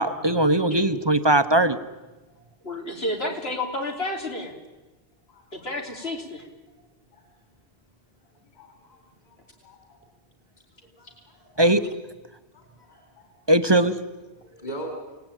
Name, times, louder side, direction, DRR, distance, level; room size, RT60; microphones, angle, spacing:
voice 1, 0.0-1.8 11.6-11.9 13.5-14.0, right 1 dB, 25° right, 10 dB, 1.0 m, -20 dB
voice 2, 2.6-4.5 5.5-6.4, left 1 dB, 80° left, 1 dB, 4.2 m, -30 dB
voice 3, 5.3-6.1 7.1-7.3 8.5-10.0 10.8-11.7 12.5-13.3 14.4-15.0, right 1 dB, 45° left, 3 dB, 4.4 m, -43 dB
28.0 x 18.5 x 9.1 m, 1.1 s
omnidirectional pair, 1.0 m